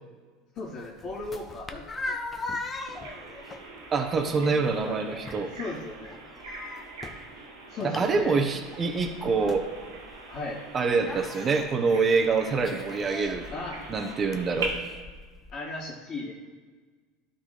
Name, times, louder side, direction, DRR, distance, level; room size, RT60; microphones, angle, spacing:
voice 1, 0.5-2.2 4.3-5.2 5.5-6.2 7.7-8.4 10.3-10.7 13.5-13.8 15.5-16.3, left 2 dB, 50° left, -9 dB, 2.4 m, -37 dB
sound 1, 0.6-15.5, left 3 dB, 25° left, 0.8 m, -41 dB
Bird vocalization bird call bird song, 2.9-14.7, right 4 dB, 90° right, 1.7 m, -43 dB
voice 2, 3.9-5.5 7.8-9.7 10.7-13.5 13.9-14.7, right 4 dB, 30° right, 5 dB, 0.9 m, -25 dB
12.0 x 4.1 x 3.9 m, 1.4 s
hypercardioid pair, 95°, 0 cm